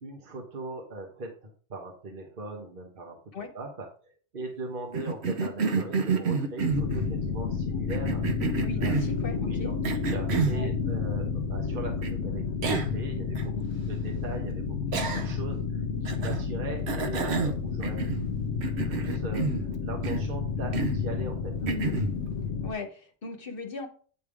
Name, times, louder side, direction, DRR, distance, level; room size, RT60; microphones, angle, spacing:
voice 1, 0.0-3.2 3.5-8.2 8.8-9.0 9.4-9.7 10.1-18.0 18.6-21.5, right 2 dB, 50° right, 1 dB, 1.4 m, -40 dB
Cough, 4.9-7.1 7.9-9.2 9.8-10.6 12.0-12.1 12.6-13.0 13.4-13.5 14.9-15.5 16.0-16.4 16.9-18.3 18.6-19.7 20.0-20.3 20.7-21.0 21.7-22.1, right 4 dB, 70° right, 1.1 m, -29 dB
sound 1, 6.7-22.7, left 5 dB, 70° left, 1.1 m, -31 dB
voice 2, 8.6-9.7 10.5-10.7 21.6-22.1 22.6-23.9, left 3 dB, 50° left, 5 dB, 1.3 m, -37 dB
9.2 x 3.5 x 4.8 m, 0.43 s
omnidirectional pair, 1.2 m